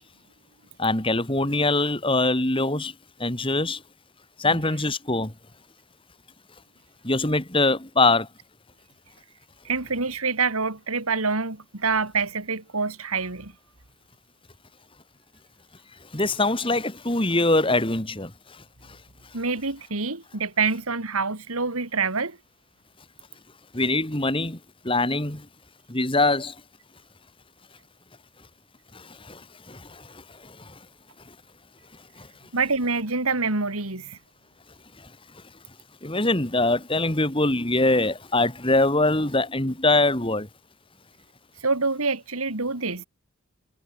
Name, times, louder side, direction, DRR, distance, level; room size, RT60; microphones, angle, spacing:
voice 1, 0.8-2.9 3.2-3.8 4.4-5.3 7.0-8.3 16.1-18.3 23.7-24.6 24.8-25.5 25.9-26.5 28.9-30.7 32.2-32.3 36.0-40.5, left 2 dB, 25° left, 2.9 m, -23 dB
voice 2, 9.6-13.5 19.3-22.4 32.5-34.2 41.6-43.0, right 4 dB, 85° right, 3.0 m, -26 dB
head